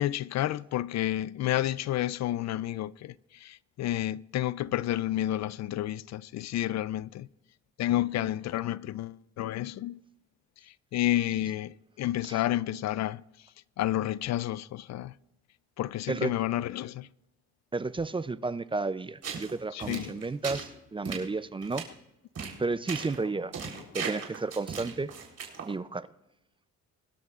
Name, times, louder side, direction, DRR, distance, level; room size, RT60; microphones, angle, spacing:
voice 1, 0.0-7.3 7.8-10.0 10.6-13.5 13.8-15.1 15.8-17.1 19.7-20.2 23.7-23.9, left 13 dB, 65° left, 0.4 m, -30 dB
voice 2, 17.7-21.8 22.6-23.5 23.9-25.1 25.7-26.1, right 3 dB, 15° right, 0.5 m, -32 dB
sound 1, 19.2-19.5 19.8-20.7 21.0-21.2 21.6-21.8 22.3-22.6 22.9-23.2 23.5-25.7, right 6 dB, 55° right, 3.9 m, -37 dB
22.5 x 12.5 x 2.5 m
cardioid pair, 90°, 30 cm